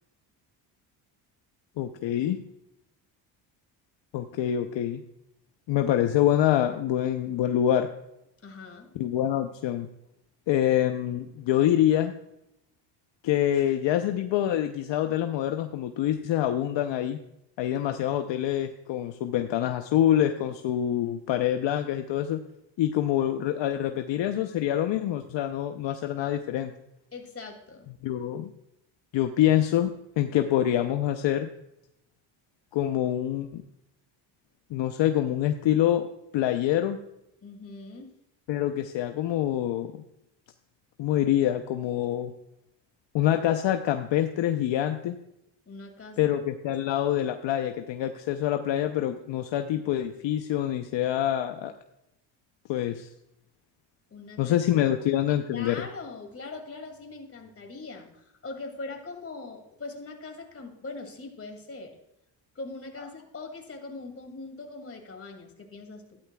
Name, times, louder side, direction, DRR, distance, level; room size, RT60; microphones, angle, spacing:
voice 1, 1.8-2.4 4.1-5.0 5.7-7.9 8.9-9.9 10.5-12.1 13.2-17.2 17.6-22.4 22.8-26.7 28.0-28.5 29.1-31.5 32.7-33.6 34.7-36.1 36.3-37.0 38.5-39.9 41.0-42.3 43.1-45.2 46.2-51.7 52.7-53.1 54.4-55.8, left 11 dB, 65° left, 7 dB, 0.8 m, -26 dB
voice 2, 8.4-8.9 27.1-27.9 37.4-38.1 45.7-46.3 54.1-54.6 55.5-62.0 62.5-66.2, left 3 dB, 30° left, 4 dB, 2.5 m, -41 dB
13.0 x 11.5 x 2.3 m, 0.84 s
cardioid pair, 85°, 48 cm